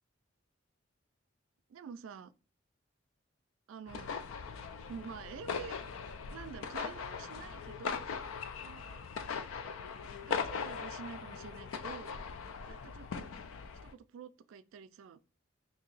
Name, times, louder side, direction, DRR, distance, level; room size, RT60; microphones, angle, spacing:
voice 1, 1.7-2.3 3.7-4.1 4.9-5.8 6.3-8.1 8.6-9.0 10.2-12.2 12.7-13.3 13.8-15.2, right 6 dB, 80° right, 0.3 m, -48 dB
sound 1, 3.9-13.9, left 6 dB, 90° left, 0.4 m, -40 dB
2.8 x 2.6 x 3.9 m
head